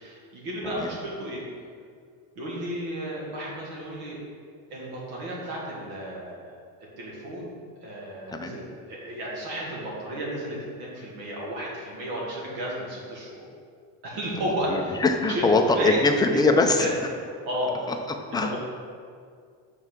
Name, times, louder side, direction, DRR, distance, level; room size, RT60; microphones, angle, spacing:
voice 1, 0.0-1.4 2.4-4.2 4.7-6.6 7.0-13.5 14.0-15.0 15.3-15.5 15.7-16.0 16.3-16.4 16.8-16.9 17.5-17.8 18.4-18.6, equal, 70° right, -4 dB, 1.9 m, -33 dB
voice 2, 14.7-16.9 17.9-18.6, left 3 dB, 10° left, 4 dB, 0.4 m, -23 dB
5.6 x 4.6 x 5.9 m, 2.1 s
cardioid pair, 135°, 39 cm